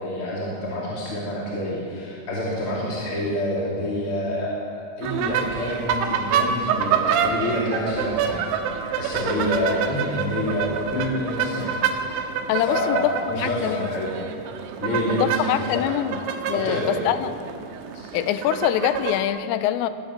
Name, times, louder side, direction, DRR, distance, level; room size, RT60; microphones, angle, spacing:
voice 1, 0.0-8.4 9.0-11.7 12.1-12.2 12.7-14.1 14.8-15.9 16.5-17.0 17.9-18.0, left 1 dB, 35° left, -4 dB, 3.0 m, -27 dB
sound 1, 5.0-19.2, right 7 dB, 70° right, 3.3 m, -27 dB
voice 2, 12.5-13.9 15.1-16.2 16.5-17.3 18.1-19.9, left 11 dB, 85° left, 12 dB, 3.4 m, -24 dB
21.0 x 18.5 x 7.2 m, 2.3 s
omnidirectional pair, 5.8 m